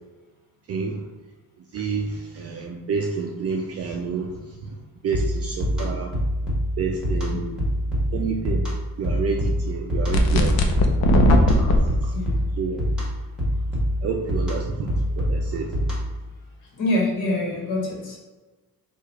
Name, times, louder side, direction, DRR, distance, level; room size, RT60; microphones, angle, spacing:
voice 1, 0.7-1.0 1.7-4.5 5.0-6.1 6.8-7.5 8.1-8.7 9.0-10.9 12.6-12.9 14.0-15.7, right 5 dB, 40° right, 1 dB, 0.4 m, -29 dB
sound 1, 5.1-16.3, equal, ahead, 1.4 m, -26 dB
sound 2, 10.1-11.8, equal, 65° left, 0.7 m, -17 dB
voice 2, 16.7-18.2, left 1 dB, 50° left, -1 dB, 1.5 m, -26 dB
4.7 x 2.5 x 4.6 m, 1.2 s
cardioid pair, 165°, 38 cm